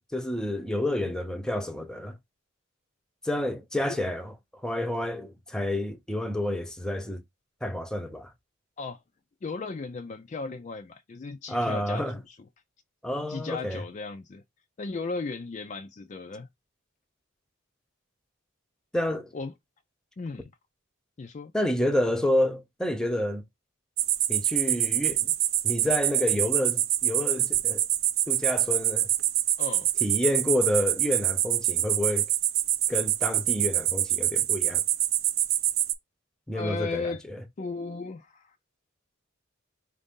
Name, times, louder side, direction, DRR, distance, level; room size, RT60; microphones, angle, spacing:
voice 1, 0.0-2.1 3.2-4.3 4.6-7.2 7.6-8.3 11.5-12.2 13.0-13.8 18.9-19.3 21.5-23.4 24.3-25.3 25.6-27.9 28.3-29.1 30.0-32.3 32.9-34.8 36.5-37.4, left 1 dB, 5° left, 0.7 m, -29 dB
voice 2, 9.4-12.4 13.3-14.4 14.8-16.5 19.3-19.5 20.2-20.5 21.2-21.5 29.6-29.9 36.5-37.2 37.6-38.6, left 3 dB, 35° left, 0.4 m, -36 dB
sound 1, 24.0-35.9, right 12 dB, 70° right, 0.5 m, -26 dB
4.8 x 2.6 x 3.6 m
head